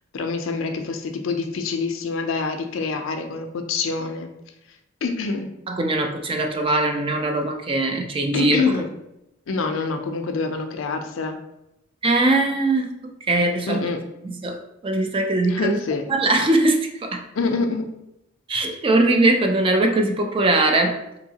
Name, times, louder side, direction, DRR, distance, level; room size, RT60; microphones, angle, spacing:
voice 1, 0.1-4.3 5.0-5.5 8.3-8.9 9.5-11.4 13.7-14.0 15.5-16.0 17.4-17.9, left 4 dB, 70° left, 6 dB, 0.4 m, -26 dB
voice 2, 5.7-8.6 12.0-12.9 13.3-13.8 14.2-15.8 16.1-17.2 18.5-21.0, right 2 dB, 25° right, 4 dB, 0.3 m, -21 dB
3.8 x 2.7 x 2.7 m, 0.87 s
head